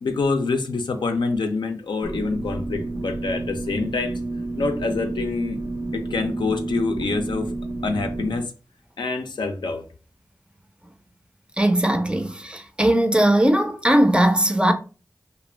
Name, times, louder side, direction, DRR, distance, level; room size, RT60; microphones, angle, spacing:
voice 1, 0.0-4.2 4.6-5.6 5.9-7.5 7.8-8.5 9.0-9.8, left 3 dB, 85° left, 0.4 m, -26 dB
sound 1, 2.0-8.4, right 2 dB, 55° right, 0.6 m, -30 dB
voice 2, 11.6-14.7, right 1 dB, 15° right, 0.4 m, -19 dB
2.3 x 2.1 x 3.2 m
cardioid pair, 45°, 8 cm